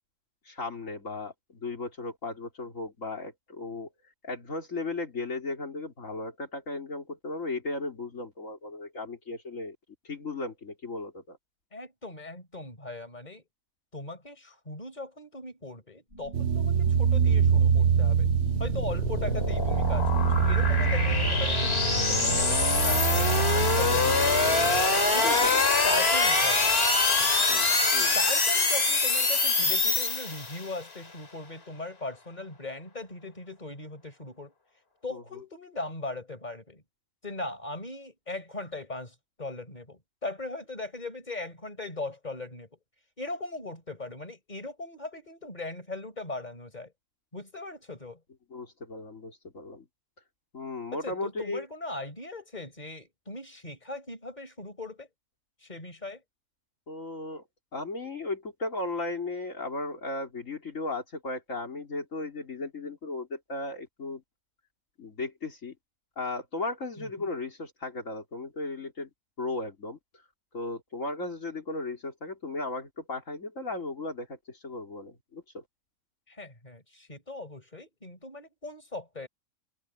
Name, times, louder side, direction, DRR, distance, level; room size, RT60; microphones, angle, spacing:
voice 1, 0.5-3.9 4.2-9.8 10.0-11.4 25.2-25.6 27.5-28.2 35.1-35.2 48.5-49.9 50.5-51.7 56.9-57.4 57.7-64.2 65.0-65.7 66.2-69.1 69.4-70.0 70.5-75.6, left 2 dB, 70° left, 3.7 m, -36 dB
voice 2, 11.7-13.4 13.9-18.3 18.6-24.7 25.1-26.8 27.2-27.4 28.1-34.5 35.0-36.8 37.2-42.7 43.2-46.9 47.3-48.2 50.9-55.1 55.6-56.2 67.0-67.1 76.3-79.3, left 2 dB, 30° left, 4.9 m, -39 dB
sound 1, 16.1-30.7, left 3 dB, 50° left, 2.6 m, -25 dB
sound 2, 16.3-24.9, right 7 dB, 65° right, 1.1 m, -26 dB
omnidirectional pair, 1.4 m